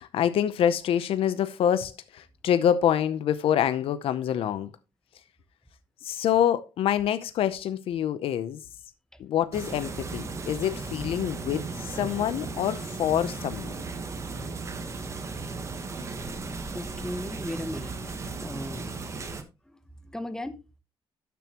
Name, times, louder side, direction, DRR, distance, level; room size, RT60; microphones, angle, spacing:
voice 1, 0.0-4.7 6.0-8.6 9.2-13.8, left 10 dB, 85° left, 0.7 m, -26 dB
sound 1, 9.5-19.4, right 3 dB, 30° right, 1.2 m, -36 dB
voice 2, 16.7-17.9 18.4-18.8 19.7-20.6, left 1 dB, 5° left, 0.9 m, -36 dB
12.0 x 7.0 x 3.0 m
wide cardioid pair, 150°, 9 cm